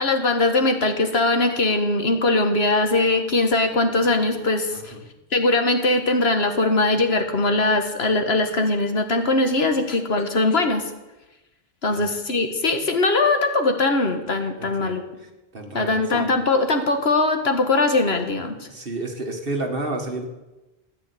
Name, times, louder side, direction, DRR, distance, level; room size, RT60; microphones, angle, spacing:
voice 1, 0.0-4.9 5.3-10.8 11.8-15.0 15.7-18.6, left 2 dB, 75° left, 6 dB, 1.8 m, -21 dB
voice 2, 14.6-14.9 15.5-16.3 18.7-20.3, right 2 dB, 60° right, 3 dB, 2.1 m, -31 dB
14.0 x 9.2 x 8.5 m, 1.0 s
omnidirectional pair, 1.1 m